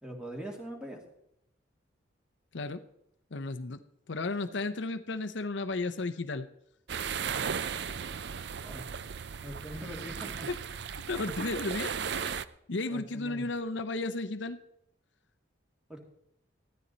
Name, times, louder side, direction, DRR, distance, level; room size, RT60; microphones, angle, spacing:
voice 1, 0.0-1.0 8.6-8.9 9.4-10.5 12.9-13.4 15.9-16.0, equal, 5° right, 1 dB, 2.3 m, -42 dB
voice 2, 3.3-3.8 4.1-6.5 10.5-10.6 11.1-12.4 12.7-14.6, left 3 dB, 70° left, 8 dB, 0.7 m, -34 dB
sound 1, 6.9-12.4, right 7 dB, 60° right, 0.5 m, -36 dB
15.0 x 12.5 x 4.0 m, 0.77 s
head